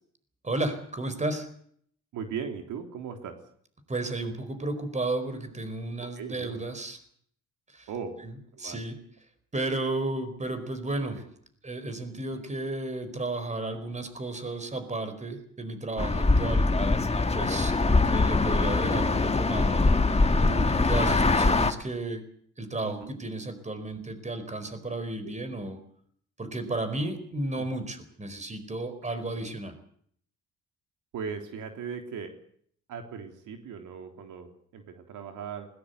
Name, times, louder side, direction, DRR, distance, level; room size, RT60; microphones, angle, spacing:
voice 1, 0.4-1.5 3.9-7.0 7.7-7.9 8.2-8.3 8.6-9.0 9.5-11.2 11.6-16.7 17.3-19.9 20.4-22.2 22.6-25.8 26.4-29.7, right 2 dB, 25° right, 10 dB, 4.6 m, -33 dB
voice 2, 2.1-3.4 6.2-6.6 7.9-8.2 8.5-8.8 15.3-15.4 18.2-18.3 21.0-21.5 22.8-23.1 25.2-25.3 27.6-27.7 31.1-32.3 32.9-35.7, right 6 dB, 80° right, 5 dB, 3.5 m, -38 dB
sound 1, 16.0-21.7, left 3 dB, 20° left, 1.9 m, -23 dB
20.5 x 19.0 x 8.2 m, 0.63 s
cardioid pair, 90°, 30 cm